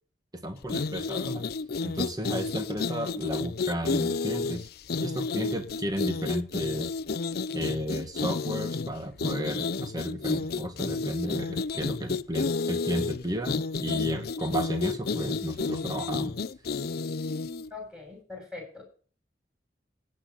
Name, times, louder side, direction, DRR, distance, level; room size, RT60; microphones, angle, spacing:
voice 1, 0.3-1.4 1.8-4.7 5.0-6.9 7.5-16.3, equal, 20° right, 7 dB, 1.8 m, -33 dB
sound 1, 0.6-17.7, left 4 dB, 60° left, 0.5 m, -31 dB
voice 2, 17.7-18.8, left 3 dB, 5° right, 1 dB, 7.0 m, -42 dB
17.0 x 8.9 x 3.9 m, 0.40 s
head